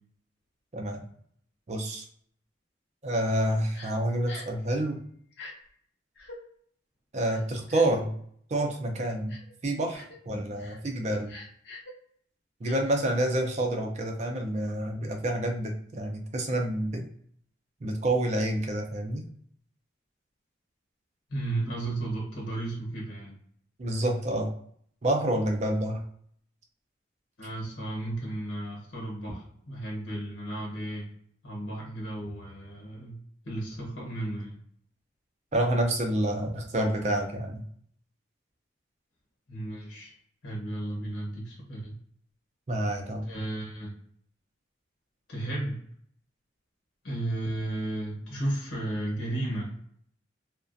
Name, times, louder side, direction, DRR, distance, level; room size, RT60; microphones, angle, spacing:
voice 1, 0.7-1.0 1.7-2.0 3.0-5.0 7.1-8.2 8.5-9.4 9.6-11.3 12.6-17.1 17.8-19.2 23.8-24.5 25.0-26.0 35.5-37.6 42.7-43.3, right 1 dB, 35° right, 3 dB, 0.4 m, -28 dB
Crying sobbing, 3.7-3.9 4.3-4.6 5.3-5.5 6.2-6.4 7.3-8.0 8.5-8.7 9.3-9.5 9.9-10.2 10.6-10.8 11.3-11.9 12.6-12.8, left 2 dB, 60° left, 0.6 m, -45 dB
voice 2, 21.3-23.4 27.4-31.1 31.4-33.2 33.4-34.6 39.5-40.1 40.4-41.9 43.3-43.9 45.3-45.8 47.0-49.9, right 1 dB, 75° left, -2 dB, 1.0 m, -34 dB
2.4 x 2.1 x 2.5 m, 0.62 s
head